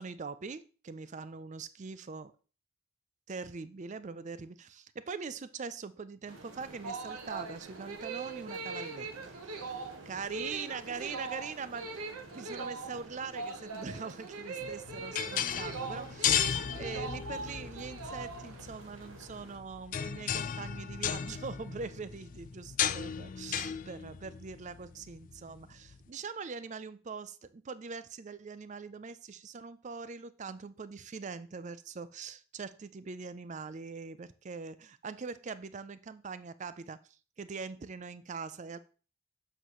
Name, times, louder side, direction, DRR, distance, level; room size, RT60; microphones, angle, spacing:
voice 1, 0.0-2.3 3.3-9.8 10.1-11.9 12.3-38.8, right 5 dB, 35° right, 14 dB, 0.4 m, -42 dB
sound 1, 6.3-19.6, right 2 dB, 60° right, 1.5 m, -51 dB
sound 2, 6.6-18.7, right 4 dB, 85° right, 1.2 m, -41 dB
sound 3, 14.6-26.0, left 9 dB, 35° left, 0.3 m, -35 dB
7.9 x 6.1 x 3.1 m, 0.38 s
head